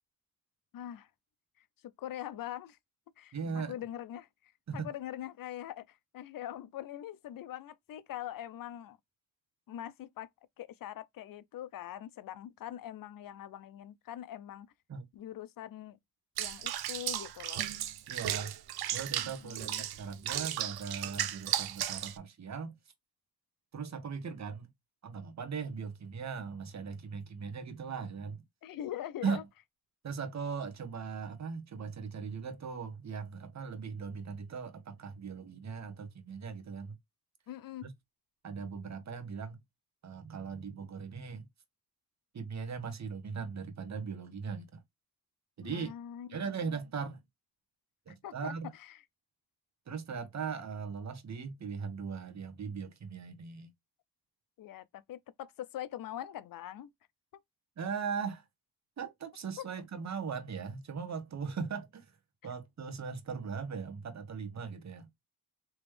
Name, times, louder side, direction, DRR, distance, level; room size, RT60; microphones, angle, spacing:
voice 1, 0.7-1.1 1.6-1.7 2.0-2.8 3.2-9.0 9.7-10.3 10.6-14.7 15.1-16.0 16.4-17.7 19.2-19.8 28.6-29.4 37.5-37.9 45.6-46.8 48.2-49.0 54.6-56.9 59.6-59.7 62.4-62.5, left 12 dB, 60° left, 0.5 m, -43 dB
voice 2, 3.3-3.7 4.7-4.9 14.9-15.1 18.1-18.5 18.9-22.8 23.7-24.7 25.0-28.4 29.2-29.4 30.0-37.0 37.8-37.9 38.4-39.6 40.0-41.5 42.3-44.8 45.6-45.9 46.3-47.2 48.1-48.7 49.9-53.7 57.8-58.4 59.0-62.1 62.4-65.1, right 5 dB, 45° right, 1.0 m, -39 dB
Water / Bathtub (filling or washing), 16.4-22.2, right 12 dB, 80° right, 0.5 m, -35 dB
3.5 x 2.9 x 3.1 m
cardioid pair, 85°, 37 cm